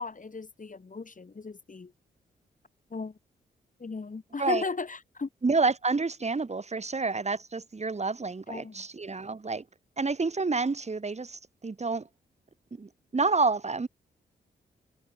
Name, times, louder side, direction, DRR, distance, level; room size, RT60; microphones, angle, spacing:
voice 1, 0.0-1.9 2.9-3.1 3.8-5.3 8.5-8.9, left 4 dB, 40° left, 3.6 m, -36 dB
voice 2, 5.4-9.6 10.0-12.1 12.7-13.9, right 4 dB, 35° right, 1.8 m, -29 dB
supercardioid pair, 40°, 20 cm